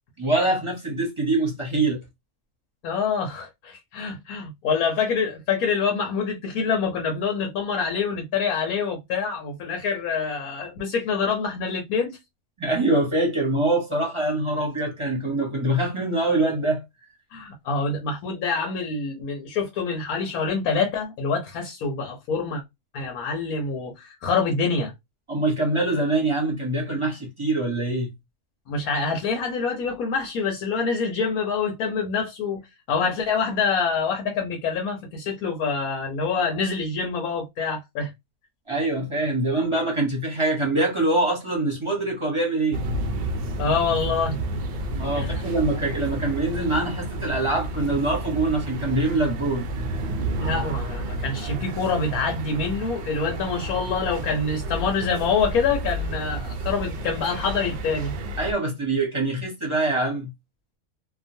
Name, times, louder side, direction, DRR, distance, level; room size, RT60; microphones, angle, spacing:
voice 1, 0.2-2.0 12.6-16.8 25.3-28.1 38.7-42.8 44.9-49.7 58.4-60.3, right 2 dB, 25° right, 0.7 m, -24 dB
voice 2, 2.8-12.2 17.3-22.6 22.9-24.9 28.7-32.6 32.9-38.1 43.6-44.4 45.1-45.5 50.3-58.1, left 5 dB, 85° left, 1.2 m, -26 dB
thunder birds ping pong, 42.7-58.5, right 1 dB, 70° right, 0.5 m, -31 dB
2.9 x 2.1 x 2.6 m
omnidirectional pair, 1.5 m